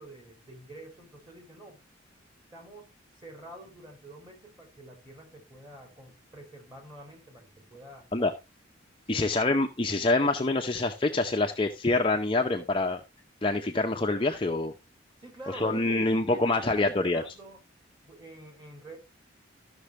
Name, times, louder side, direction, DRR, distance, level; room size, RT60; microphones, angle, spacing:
voice 1, 0.0-1.9 2.5-8.1 9.1-9.4 15.2-17.6 18.0-19.0, right 1 dB, 20° right, 3.1 m, -47 dB
voice 2, 9.1-13.0 13.4-14.7 15.5-17.2, left 2 dB, 25° left, 0.7 m, -26 dB
13.5 x 6.0 x 3.2 m
head